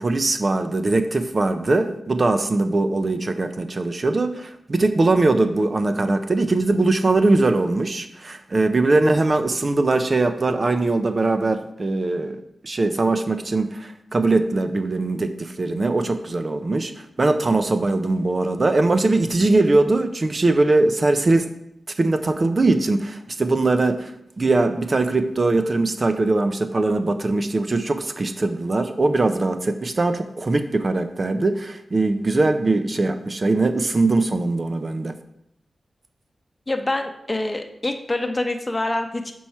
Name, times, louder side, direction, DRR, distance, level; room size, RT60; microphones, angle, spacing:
voice 1, 0.0-21.5 22.0-35.1, right 2 dB, 45° right, 8 dB, 0.6 m, -21 dB
voice 2, 36.7-39.4, left 2 dB, 25° left, 6 dB, 0.8 m, -26 dB
7.0 x 4.6 x 4.4 m, 0.78 s
cardioid pair, 60°, 0 cm